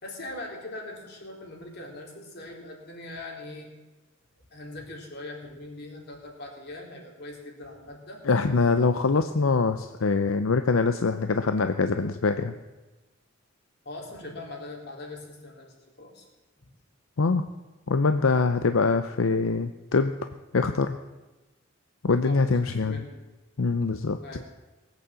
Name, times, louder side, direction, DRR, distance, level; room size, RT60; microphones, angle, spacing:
voice 1, 0.0-3.7 4.5-8.2 13.9-16.3 22.2-23.2 24.2-24.5, left 2 dB, 55° left, 0 dB, 3.8 m, -41 dB
voice 2, 8.3-12.6 17.2-17.4 17.9-20.1 20.5-21.0 22.0-23.0 23.6-24.2, left 4 dB, 85° left, 9 dB, 0.6 m, -24 dB
19.0 x 8.5 x 7.6 m, 1.2 s
head